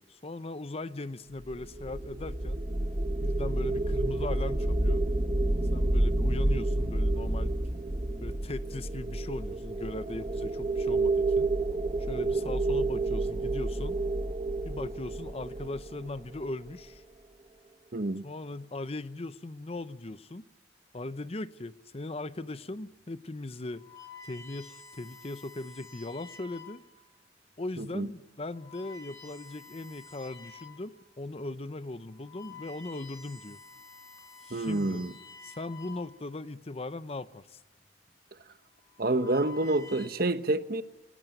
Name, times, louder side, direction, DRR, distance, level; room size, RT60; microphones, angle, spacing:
voice 1, 0.1-2.6 3.2-5.0 5.7-7.5 8.2-11.5 12.0-14.0 14.6-17.0 18.2-20.4 20.9-23.8 24.2-26.8 27.6-33.6 34.4-35.0 35.4-37.6, left 2 dB, 35° left, 0.7 m, -39 dB
sound 1, 1.5-16.7, right 2 dB, 35° right, 1.1 m, -29 dB
voice 2, 17.9-18.2 27.8-28.1 34.5-35.1 39.0-40.8, right 2 dB, 55° right, 1.1 m, -28 dB
sound 2, 22.7-23.0 23.6-27.0 27.7-27.9 28.4-30.9 31.4-31.5 32.0-36.4 37.5-37.8 38.7-40.1, left 4 dB, 20° left, 5.9 m, -50 dB
28.0 x 18.5 x 9.3 m
head